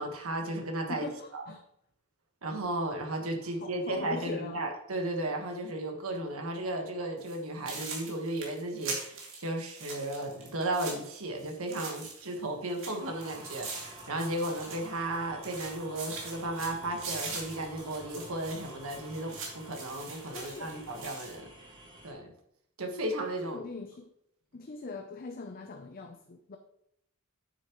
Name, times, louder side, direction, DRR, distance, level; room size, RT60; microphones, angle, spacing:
voice 1, 0.0-1.4 2.4-21.5 22.0-22.3 22.8-23.6, right 1 dB, 80° right, 1.4 m, -35 dB
voice 2, 0.9-1.6 3.4-4.6 20.3-20.7 23.4-24.1 24.5-26.6, left 4 dB, 45° left, 0.6 m, -41 dB
sound 1, 7.2-7.4 7.7-12.4 12.7-15.2 15.4-21.4, right 4 dB, 65° right, 2.6 m, -42 dB
sound 2, 13.0-22.1, equal, 25° right, 2.1 m, -50 dB
9.3 x 6.9 x 3.1 m
head